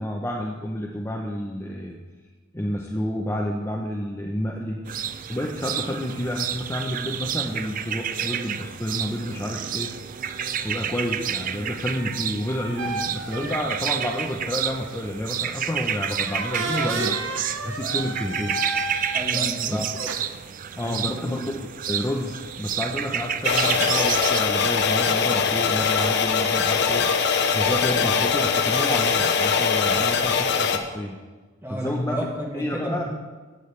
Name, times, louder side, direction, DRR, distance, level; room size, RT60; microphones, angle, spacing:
voice 1, 0.0-2.0 2.5-4.8 5.3-9.9 10.6-17.2 17.6-18.6 19.6-19.8 20.7-21.5 21.9-27.1 27.5-31.2 31.7-32.2 32.5-33.0, left 1 dB, 15° left, 0 dB, 0.7 m, -29 dB
sound 1, 4.9-24.4, right 9 dB, 40° right, 0.4 m, -30 dB
sound 2, 11.9-14.5 15.0-15.3 16.2-19.5 19.9-20.1, right 3 dB, 70° right, 1.1 m, -32 dB
voice 2, 19.1-19.9 20.8-21.3 31.6-33.0, equal, 10° right, -2 dB, 2.0 m, -31 dB
sound 3, 23.4-30.8, left 6 dB, 60° left, 0.8 m, -22 dB
15.0 x 8.5 x 3.3 m, 1.3 s
head